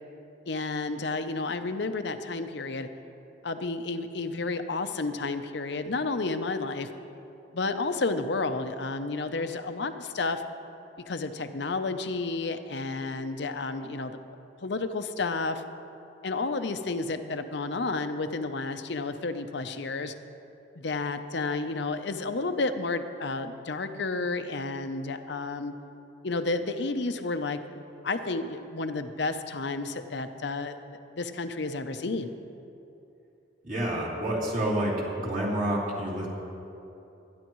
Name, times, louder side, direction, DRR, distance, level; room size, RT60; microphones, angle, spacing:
voice 1, 0.5-2.9 3.4-6.9 7.5-10.4 11.1-14.2 14.6-15.6 16.2-20.1 20.7-25.7 26.2-27.8 28.0-32.3, left 3 dB, 60° left, 9 dB, 0.7 m, -31 dB
voice 2, 33.6-36.3, right 1 dB, 40° right, -5 dB, 3.1 m, -28 dB
25.0 x 10.5 x 3.1 m, 2.8 s
head